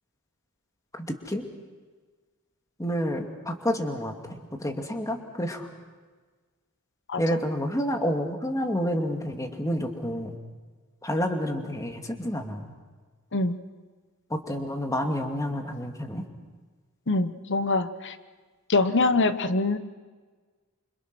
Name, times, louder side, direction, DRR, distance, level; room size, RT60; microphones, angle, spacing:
voice 1, 0.9-1.5 2.8-5.7 7.2-10.4 11.0-12.7 14.3-16.2, equal, 15° left, 4 dB, 2.4 m, -29 dB
voice 2, 17.1-18.2 18.7-19.8, left 3 dB, 55° left, 11 dB, 1.1 m, -24 dB
28.0 x 26.0 x 6.2 m, 1.4 s
head